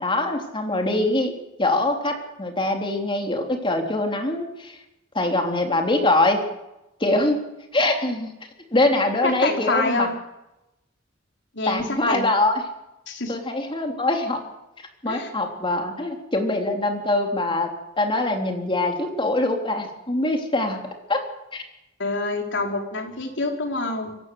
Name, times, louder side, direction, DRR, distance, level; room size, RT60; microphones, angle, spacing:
voice 1, 0.0-1.3 1.6-4.8 5.1-6.4 7.0-7.4 7.7-8.3 8.7-10.1 11.7-12.6 13.3-14.4 15.0-17.7 18.0-21.2 21.5-21.6, left 2 dB, 25° left, 3 dB, 3.6 m, -23 dB
voice 2, 9.2-10.1 11.5-12.3 13.1-13.4 15.1-15.3 22.0-24.2, left 2 dB, 65° left, 2 dB, 4.5 m, -26 dB
23.5 x 17.0 x 8.0 m, 0.93 s
head